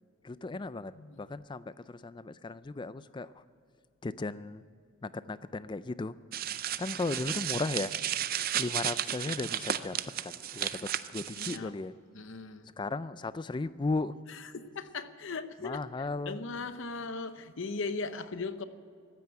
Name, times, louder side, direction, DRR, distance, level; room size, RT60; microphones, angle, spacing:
voice 1, 0.2-3.4 4.0-4.6 5.0-6.1 6.8-7.9 8.6-10.0 10.2-11.9 12.8-14.2 15.6-16.4, left 3 dB, 20° left, 16 dB, 0.4 m, -36 dB
sound 1, 6.3-11.6, right 10 dB, 45° right, 0.5 m, -34 dB
voice 2, 11.3-11.7 12.1-12.7 14.3-15.8 16.3-18.6, left 4 dB, 65° left, 11 dB, 0.8 m, -38 dB
15.5 x 9.2 x 8.9 m, 2.3 s
head